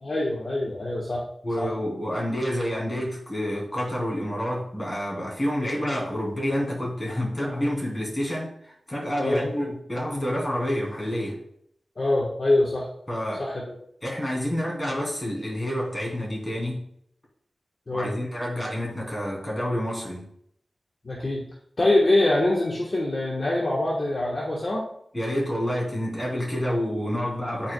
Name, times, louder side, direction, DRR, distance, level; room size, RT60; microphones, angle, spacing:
voice 1, 0.0-1.2 1.6-1.7 9.2-9.5 12.0-12.9 13.4-13.7 17.9-18.1 21.0-21.4 21.8-24.9, left 1 dB, 45° left, -4 dB, 1.3 m, -24 dB
voice 2, 1.4-11.4 13.1-13.4 14.0-16.8 17.9-20.2 25.1-27.7, equal, 20° left, -3 dB, 2.9 m, -28 dB
11.5 x 4.6 x 2.3 m, 0.68 s
wide cardioid pair, 90°, 0 cm